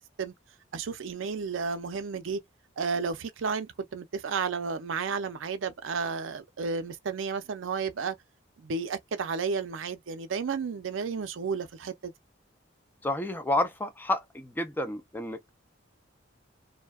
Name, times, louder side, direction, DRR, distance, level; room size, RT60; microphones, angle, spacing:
voice 1, 0.7-2.4 2.8-8.2 8.6-12.1, right 5 dB, 75° right, 0.5 m, -32 dB
voice 2, 13.0-15.5, left 1 dB, 10° left, 0.4 m, -30 dB
2.6 x 2.1 x 2.2 m
head